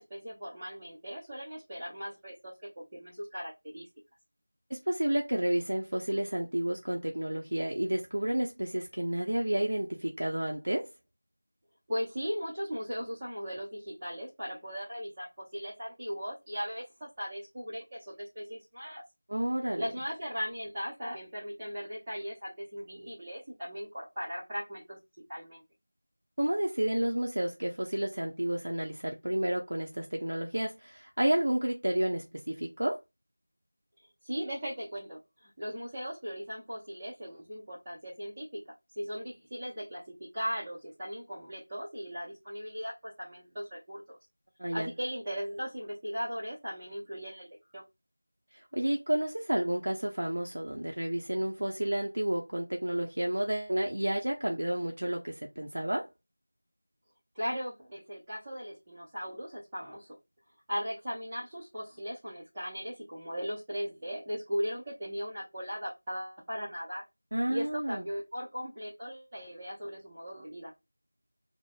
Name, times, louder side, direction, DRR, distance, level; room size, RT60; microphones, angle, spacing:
voice 1, 0.0-3.9 11.9-19.0 19.8-25.0 25.3-25.6 34.2-38.6 39.0-44.2 44.7-47.9 57.3-60.1 60.7-67.0 67.5-70.7, equal, 10° right, 0.6 m, -38 dB
voice 2, 4.7-10.9 19.3-19.9 26.4-33.0 44.6-44.9 48.5-56.1 67.3-68.0, right 1 dB, 55° right, 0.5 m, -31 dB
3.1 x 2.0 x 2.3 m
figure-of-eight pair, 175°, 0 cm